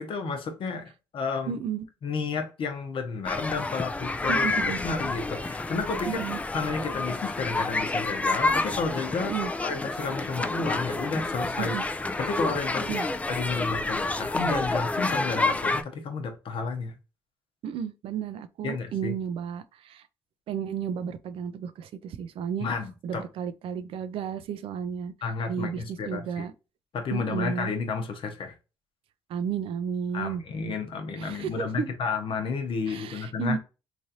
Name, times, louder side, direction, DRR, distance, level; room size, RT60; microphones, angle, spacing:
voice 1, 0.0-1.6 2.0-4.5 4.8-6.2 6.5-11.8 12.2-16.9 18.6-19.1 22.6-23.3 25.2-26.5 26.9-28.5 30.1-33.6, left 4 dB, 60° left, 0.8 m, -31 dB
voice 2, 1.5-1.8 4.3-4.8 6.1-6.4 9.2-9.5 11.6-11.8 12.8-13.1 17.6-20.0 20.5-22.7 23.0-25.1 25.5-26.5 27.1-27.7 29.3-30.4 31.2-31.9 32.9-33.6, right 7 dB, 70° right, 0.4 m, -32 dB
sound 1, 3.3-15.8, left 2 dB, 15° left, 0.3 m, -29 dB
3.2 x 2.5 x 2.7 m
supercardioid pair, 70°, 10 cm